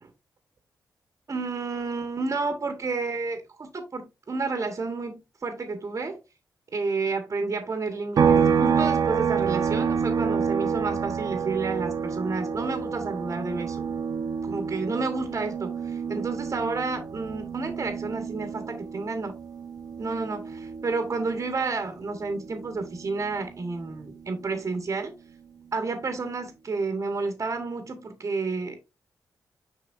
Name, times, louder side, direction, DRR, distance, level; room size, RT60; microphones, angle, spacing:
voice 1, 1.3-6.2 6.7-13.9 14.4-19.4 20.0-25.1 25.7-28.8, right 3 dB, 45° right, 1.4 m, -30 dB
sound 1, 8.2-21.7 22.0-24.3, right 6 dB, 60° right, 0.8 m, -28 dB
7.0 x 5.6 x 2.6 m
cardioid pair, 70°, 7 cm